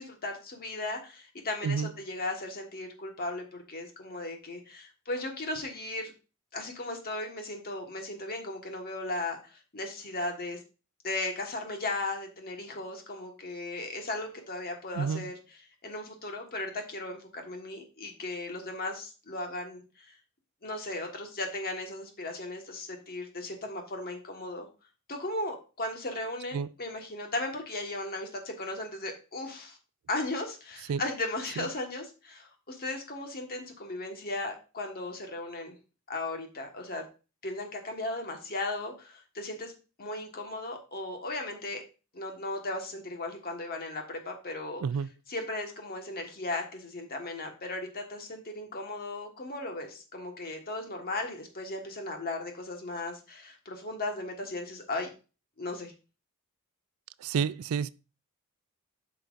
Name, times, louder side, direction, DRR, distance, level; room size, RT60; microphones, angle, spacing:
voice 1, 0.0-6.1 6.5-10.6 11.0-15.3 15.8-20.2 20.6-24.7 25.1-29.8 30.1-35.7 36.1-37.0 37.4-39.7 40.0-41.8 42.1-44.8 45.3-55.1 55.6-55.9, left 2 dB, 45° left, 1.4 m, -36 dB
voice 2, 14.9-15.3 26.5-26.7 30.9-31.0 31.6-31.7 44.8-45.1 57.2-57.9, right 6 dB, 70° right, 0.3 m, -29 dB
9.0 x 5.8 x 2.5 m
head